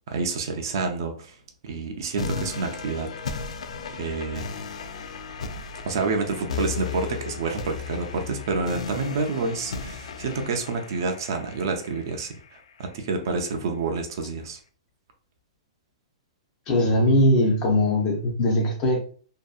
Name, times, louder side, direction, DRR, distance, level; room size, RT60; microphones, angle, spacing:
voice 1, 0.1-1.4 1.6-3.5 3.9-4.5 5.8-14.6, right 4 dB, 40° right, 4 dB, 0.4 m, -28 dB
sound 1, 2.2-13.2, left 5 dB, 85° left, 0.3 m, -35 dB
voice 2, 16.7-19.0, left 1 dB, 20° left, 0 dB, 0.5 m, -20 dB
2.6 x 2.2 x 2.3 m, 0.44 s
hypercardioid pair, 180°, 3 cm